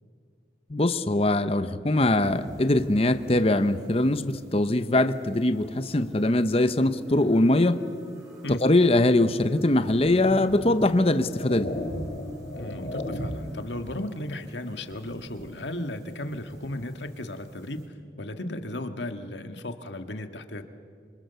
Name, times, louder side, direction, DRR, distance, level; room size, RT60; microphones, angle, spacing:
voice 1, 0.7-7.8 8.5-11.7, left 1 dB, 30° left, 11 dB, 0.8 m, -22 dB
sound 1, 2.2-17.9, equal, 20° right, 5.7 m, -46 dB
sound 2, 10.0-10.1 10.9-13.6, left 1 dB, 50° left, 3.2 m, -34 dB
voice 2, 12.5-20.6, left 1 dB, 75° left, 7 dB, 1.8 m, -35 dB
27.0 x 25.5 x 6.9 m, 2.1 s
head